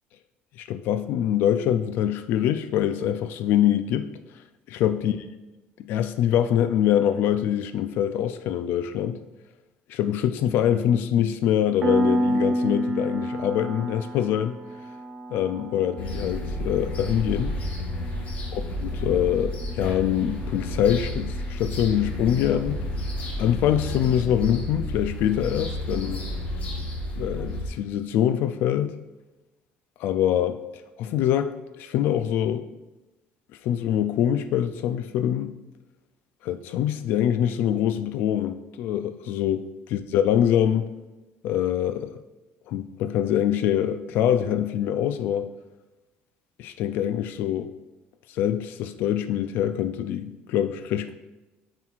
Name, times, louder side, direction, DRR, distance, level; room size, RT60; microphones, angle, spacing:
voice 1, 0.6-4.1 4.7-5.2 5.8-9.2 9.9-14.6 15.3-17.5 18.5-22.8 23.4-26.2 27.2-28.9 30.0-30.6 31.0-32.6 33.6-35.5 36.4-40.9 41.4-42.1 42.7-45.5 46.6-47.7 48.3-51.1, left 10 dB, 65° left, 10 dB, 0.3 m, -24 dB
Piano, 11.8-22.2, right 1 dB, 30° right, 0.6 m, -31 dB
sound 1, 16.0-27.7, left 1 dB, 40° left, 1.1 m, -31 dB
9.2 x 4.5 x 2.4 m, 1.1 s
cardioid pair, 155°, 4 cm